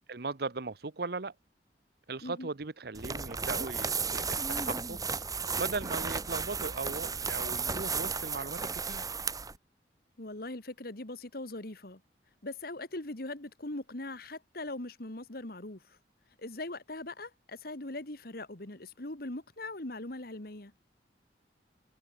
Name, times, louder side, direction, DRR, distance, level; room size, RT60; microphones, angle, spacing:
voice 1, 0.1-1.3 2.1-5.0 5.5-9.0, right 3 dB, 60° right, 1.0 m, -38 dB
sound 1, 2.9-9.6, right 5 dB, 20° right, 2.7 m, -34 dB
voice 2, 10.2-12.0 12.4-15.8 16.4-20.7, left 2 dB, 60° left, 2.2 m, -40 dB
head